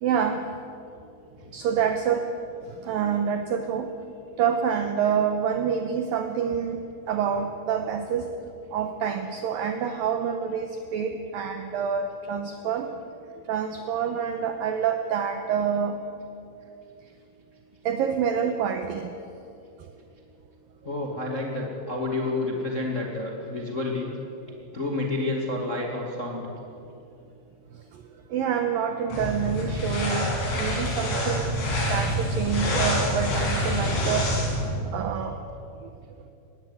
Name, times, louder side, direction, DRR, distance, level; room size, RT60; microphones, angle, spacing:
voice 1, 0.0-0.4 1.5-2.3 2.8-3.9 4.4-6.8 7.1-8.3 8.7-12.9 13.5-16.0 17.9-19.1 28.3-34.3 34.9-35.4, right 7 dB, 85° right, 7 dB, 2.0 m, -27 dB
voice 2, 20.8-24.1 24.7-26.5, left 2 dB, 35° left, 0 dB, 1.2 m, -29 dB
sound 1, 29.1-34.7, equal, 85° left, 7.5 m, -26 dB
19.5 x 16.5 x 9.6 m, 2.7 s
omnidirectional pair, 5.3 m